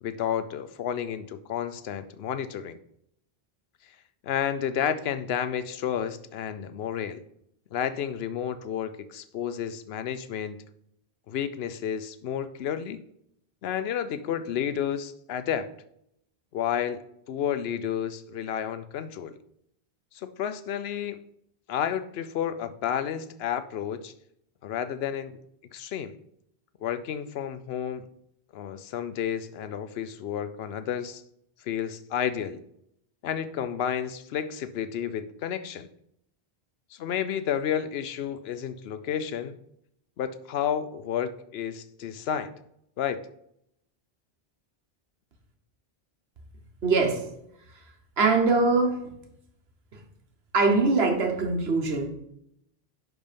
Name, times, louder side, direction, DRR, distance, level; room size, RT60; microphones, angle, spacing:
voice 1, 0.0-2.8 4.2-7.2 7.7-10.6 11.3-13.0 13.6-15.7 16.5-17.0 17.3-19.3 20.2-21.2 21.7-24.1 24.6-25.4 25.7-26.1 26.8-28.1 28.5-31.2 31.7-32.6 33.2-35.9 36.9-39.6 40.2-42.5 43.0-43.2, left 9 dB, 80° left, 12 dB, 0.9 m, -31 dB
voice 2, 46.8-47.3 48.2-49.1 50.5-52.1, right 3 dB, 80° right, 4 dB, 1.4 m, -22 dB
10.5 x 3.6 x 5.1 m, 0.75 s
omnidirectional pair, 1.0 m